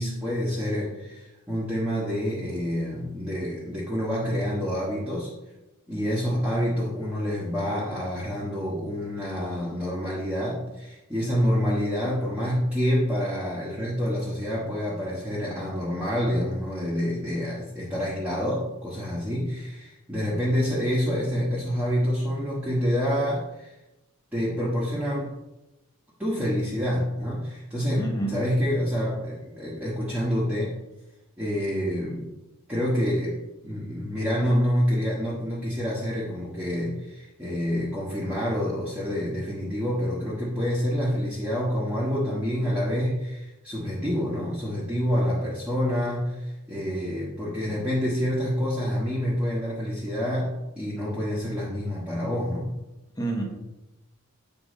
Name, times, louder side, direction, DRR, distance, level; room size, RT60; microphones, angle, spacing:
voice 1, 0.0-5.3 5.9-23.7 24.3-25.3 26.2-30.7 31.4-32.3 32.7-52.7, equal, 5° right, -8 dB, 1.3 m, -27 dB
voice 2, 28.0-28.4 53.2-53.4, right 2 dB, 15° left, 0 dB, 1.2 m, -28 dB
8.4 x 3.9 x 5.2 m, 0.99 s
head